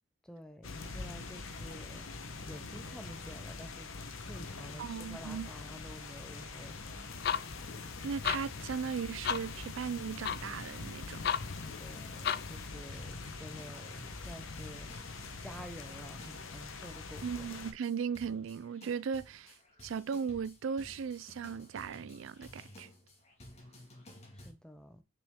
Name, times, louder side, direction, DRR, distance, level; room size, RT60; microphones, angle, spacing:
voice 1, 0.2-2.2 2.5-3.9 4.2-6.8 11.8-14.9 15.4-17.5 24.3-25.0, equal, 5° left, 0.7 m, -50 dB
sound 1, 0.6-17.7, left 3 dB, 85° left, 1.0 m, -44 dB
voice 2, 4.8-5.5 8.0-11.2 17.2-19.6 19.8-22.9, right 6 dB, 75° right, 0.4 m, -37 dB
sound 2, 7.1-12.7, left 8 dB, 50° left, 0.4 m, -38 dB
sound 3, 12.2-24.5, left 1 dB, 30° left, 1.9 m, -55 dB
6.1 x 5.1 x 3.7 m
head